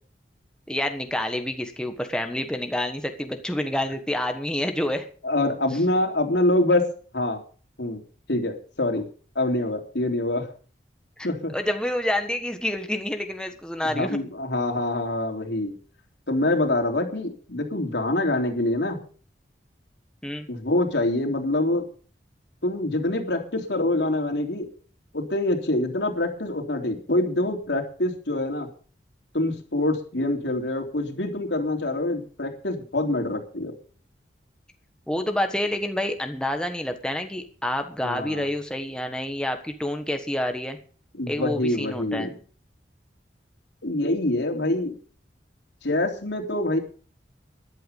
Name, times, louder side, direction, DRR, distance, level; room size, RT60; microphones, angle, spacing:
voice 1, 0.7-5.1 11.2-11.3 11.5-14.2 20.2-20.5 35.1-40.8 41.3-42.3, left 1 dB, 5° left, 5 dB, 1.4 m, -28 dB
voice 2, 5.2-6.9 7.1-7.4 7.8-8.0 8.3-9.1 9.4-10.5 11.2-11.5 13.8-15.7 16.3-19.0 20.5-21.8 22.6-24.7 25.1-28.7 29.3-33.7 38.0-38.5 41.1-42.4 43.8-44.9 45.8-46.8, left 1 dB, 85° left, 2 dB, 3.5 m, -25 dB
14.0 x 11.5 x 5.5 m, 0.41 s
head